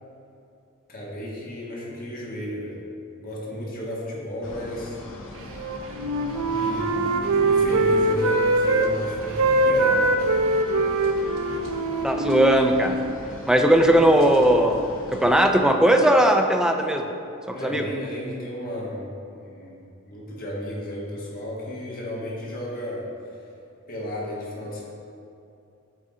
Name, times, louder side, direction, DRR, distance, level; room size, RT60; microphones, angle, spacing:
voice 1, 0.9-2.8 3.2-5.0 6.5-7.0 7.4-10.2 17.5-23.4 23.9-24.8, left 1 dB, 40° left, -5 dB, 1.3 m, -34 dB
sound 1, 4.4-15.5, left 1 dB, 60° left, 0.7 m, -39 dB
Wind instrument woodwind instrument, 5.5-8.9 9.2-13.1, right 2 dB, 65° right, 0.4 m, -22 dB
voice 2, 12.0-13.0 13.5-14.8 15.1-17.1 17.5-17.8, right 1 dB, 5° right, 4 dB, 0.3 m, -18 dB
7.6 x 3.7 x 3.7 m, 2.6 s
head